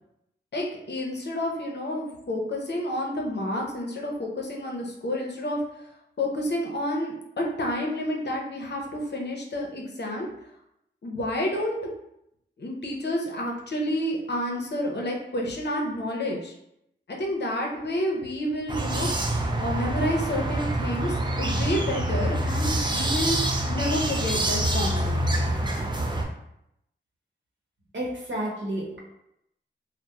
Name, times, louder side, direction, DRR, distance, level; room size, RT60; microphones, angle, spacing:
voice 1, 0.5-5.6 6.2-10.3 11.0-11.9 12.6-16.5 17.2-23.4 23.7-25.2, left 1 dB, 60° left, 0 dB, 0.6 m, -29 dB
sound 1, 18.7-26.3, right 1 dB, 25° right, 0.4 m, -26 dB
voice 2, 27.9-29.0, right 1 dB, 70° right, -3 dB, 0.8 m, -31 dB
2.9 x 2.0 x 2.3 m, 0.80 s
wide cardioid pair, 60°, 20 cm